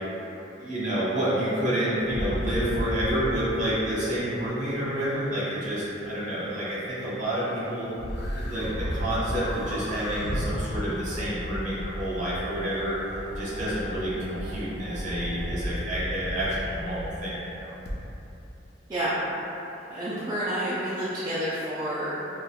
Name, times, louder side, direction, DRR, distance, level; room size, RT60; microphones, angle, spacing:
voice 1, 0.5-7.9 8.3-17.7, right 1 dB, 40° right, -10 dB, 1.1 m, -29 dB
sound 1, 2.0-3.5 8.0-17.2 17.9-18.0, equal, 55° left, 0.4 m, -33 dB
voice 2, 19.9-22.3, right 1 dB, 20° right, -11 dB, 0.4 m, -29 dB
4.8 x 2.2 x 2.2 m, 2.9 s
head